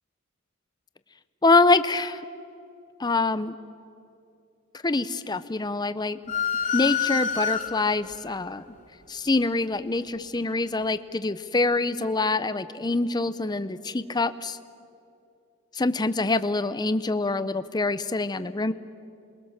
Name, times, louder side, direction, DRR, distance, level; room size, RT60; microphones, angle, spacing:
voice 1, 1.4-2.2 3.0-3.5 4.8-6.2 6.7-8.6 9.1-14.6 15.7-18.7, left 3 dB, 20° left, 13 dB, 0.7 m, -25 dB
sound 1, 6.3-8.1, left 7 dB, 40° left, 2.4 m, -27 dB
27.5 x 21.5 x 7.4 m, 2.6 s
head